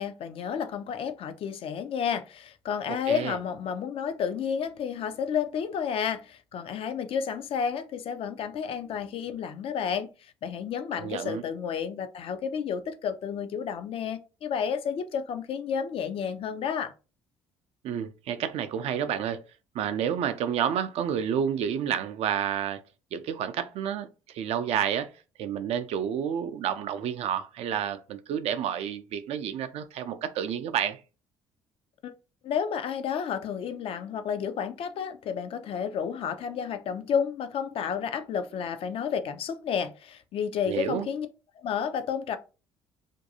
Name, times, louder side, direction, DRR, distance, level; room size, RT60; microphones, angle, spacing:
voice 1, 0.0-16.9 32.0-32.1 32.4-41.3 41.6-42.4, left 7 dB, 50° left, 0.4 m, -31 dB
voice 2, 3.1-3.4 11.0-11.4 17.8-19.4 19.7-22.8 23.1-25.1 25.4-31.0 40.7-41.1, right 9 dB, 55° right, 0.4 m, -30 dB
2.6 x 2.2 x 2.7 m
hypercardioid pair, 55°, 12 cm